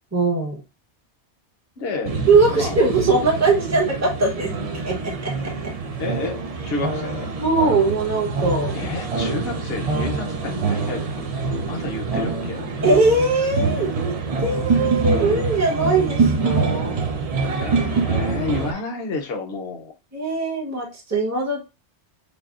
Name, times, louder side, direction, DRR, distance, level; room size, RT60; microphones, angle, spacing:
voice 1, 0.1-0.6 2.3-4.5 4.8-4.9 5.2-5.3 7.4-8.7 12.8-14.1 14.4-16.9 20.1-21.6, right 3 dB, 15° right, 0.8 m, -20 dB
voice 2, 1.8-2.2 2.5-2.8 6.0-7.3 8.7-11.3 11.6-12.7 17.6-19.9, left 3 dB, 60° left, 0.9 m, -30 dB
sound 1, 2.0-18.7, right 4 dB, 50° right, 0.4 m, -25 dB
5.2 x 2.2 x 2.4 m
omnidirectional pair, 1.2 m